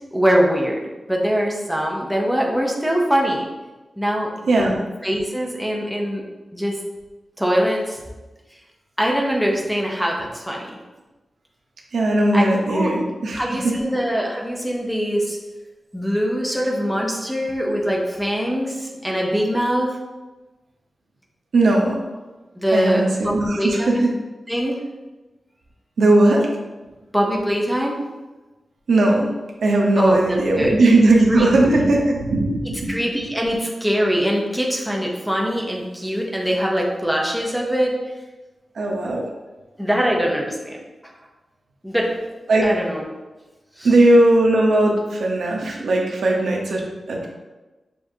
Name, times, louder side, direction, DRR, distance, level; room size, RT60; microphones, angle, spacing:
voice 1, 0.1-0.7 1.1-3.4 4.0-4.3 4.6-4.7 5.0-6.2 6.5-6.8 7.4-8.0 9.0-10.7 12.3-12.9 13.3-15.4 15.9-19.9 22.6-24.1 24.5-24.8 27.1-28.0 29.9-30.8 31.3-31.8 32.9-38.0 39.8-40.8 41.8-42.1 42.6-43.0 43.8-43.9, equal, ahead, -2 dB, 0.6 m, -22 dB
voice 2, 11.9-13.8 21.5-22.0 22.7-24.1 26.0-26.5 28.9-29.3 29.6-32.9 38.7-39.2 42.5-42.7 43.8-46.8 47.1-47.3, right 2 dB, 85° right, 0 dB, 0.7 m, -18 dB
6.9 x 2.5 x 2.7 m, 1.1 s
wide cardioid pair, 165°, 0 cm